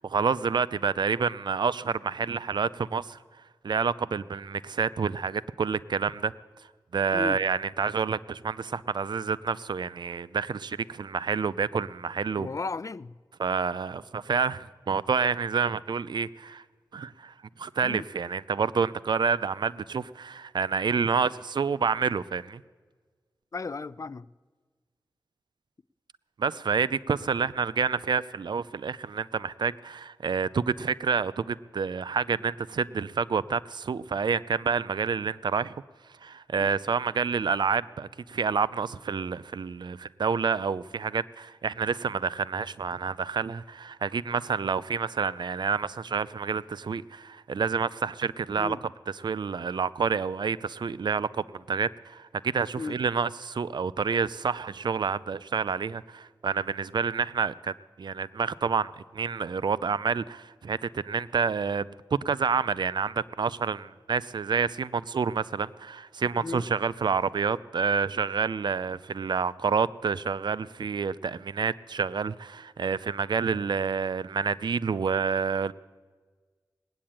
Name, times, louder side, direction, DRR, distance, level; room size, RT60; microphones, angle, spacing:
voice 1, 0.0-3.2 3.6-6.3 6.9-12.5 13.4-16.6 16.9-22.6 26.4-35.7 36.2-48.8 49.2-75.7, right 5 dB, 70° right, 0.5 m, -28 dB
voice 2, 12.4-13.1 17.8-18.1 23.5-24.3 36.6-36.7 48.6-48.8 52.8-53.0 66.4-66.7, left 4 dB, 45° left, 0.4 m, -34 dB
19.0 x 8.6 x 8.8 m
cardioid pair, 50°, 8 cm